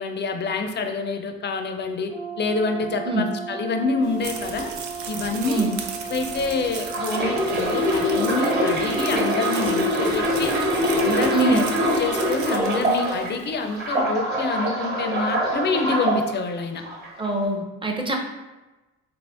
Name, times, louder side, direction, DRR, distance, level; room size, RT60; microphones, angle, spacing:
voice 1, 0.0-2.1 2.4-4.7 5.1-5.7 6.1-10.5 10.9-11.6 12.0-16.8, left 4 dB, 35° left, 6 dB, 0.4 m, -26 dB
Brass instrument, 2.1-9.8, right 5 dB, 55° right, 1.1 m, -36 dB
sound 1, 4.0-13.6, right 6 dB, 70° right, 0.5 m, -37 dB
voice 2, 5.4-5.8 11.3-11.6 17.2-18.2, right 2 dB, 15° right, 2 dB, 0.5 m, -24 dB
sound 2, 6.8-13.3 13.7-16.2 16.8-17.1, equal, 35° right, 1.0 m, -24 dB
2.9 x 2.5 x 3.4 m, 1.1 s
cardioid pair, 90°, 30 cm